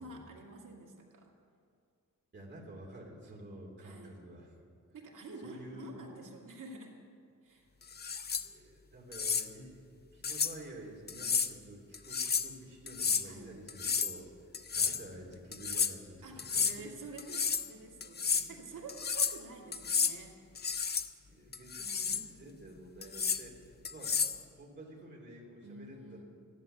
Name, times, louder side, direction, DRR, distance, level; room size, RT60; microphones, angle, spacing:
voice 1, 0.0-1.3 3.8-4.2 4.9-7.0 7.4-7.7 13.2-13.6 16.2-20.4 21.8-22.3 25.6-26.2, right 2 dB, 70° right, -1 dB, 2.5 m, -49 dB
voice 2, 2.3-4.6 5.4-6.1 8.3-16.9 17.8-17.9 18.3-18.6 21.3-24.2 24.5-26.2, right 1 dB, 35° right, -2 dB, 2.9 m, -50 dB
sound 1, 7.9-8.4 9.1-9.5 10.2-10.5 11.1-11.5 11.9-12.5 12.9-13.2 13.7-14.2 14.5-15.0 15.5-15.9 16.4-16.8 17.2-17.7 18.0-18.5 18.9-19.4 19.7-20.1 20.5-21.1 21.5-22.2 23.0-23.4 23.8-24.4, left 6 dB, 30° left, 0.5 m, -31 dB
14.0 x 11.5 x 6.7 m, 2.3 s
wide cardioid pair, 155°, 32 cm